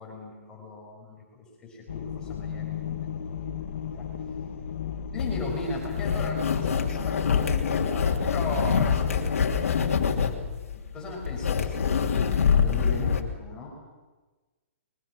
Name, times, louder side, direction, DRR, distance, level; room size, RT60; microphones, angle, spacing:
voice 1, 0.0-4.1 5.1-13.7, left 2 dB, 10° left, -2 dB, 5.8 m, -38 dB
sound 1, 1.9-10.1, left 8 dB, 65° left, 2.0 m, -34 dB
sound 2, 5.2-13.2, left 6 dB, 85° left, 2.6 m, -25 dB
25.5 x 22.5 x 6.4 m, 1.2 s
hypercardioid pair, 170°, 8 cm